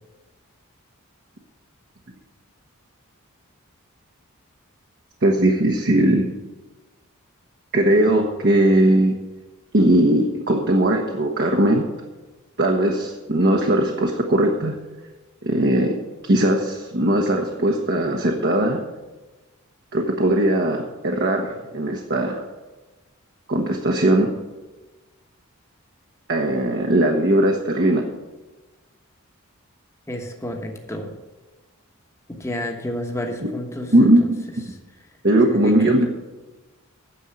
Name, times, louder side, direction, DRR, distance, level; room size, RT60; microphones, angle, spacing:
voice 1, 5.2-6.3 7.7-9.1 9.7-11.8 12.6-14.7 15.4-18.8 19.9-22.4 23.5-24.3 26.3-28.0 33.9-34.4 35.2-36.1, right 1 dB, 50° right, 0 dB, 1.1 m, -19 dB
voice 2, 30.1-31.1 32.4-34.3 35.5-35.9, left 1 dB, 15° left, 2 dB, 1.2 m, -30 dB
10.0 x 7.0 x 7.9 m, 1.2 s
head